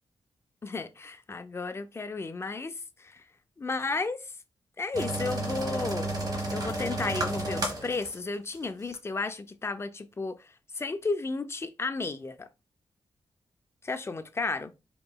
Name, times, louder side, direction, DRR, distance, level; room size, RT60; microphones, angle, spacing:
voice 1, 0.6-3.3 3.6-4.3 4.8-6.2 6.5-12.5 13.8-14.7, left 3 dB, 25° left, 0.4 m, -33 dB
sound 1, 4.9-8.2 8.5-8.6 8.9-9.0, right 1 dB, 40° right, 1.0 m, -32 dB
4.8 x 2.9 x 2.2 m
wide cardioid pair, 125°, 10 cm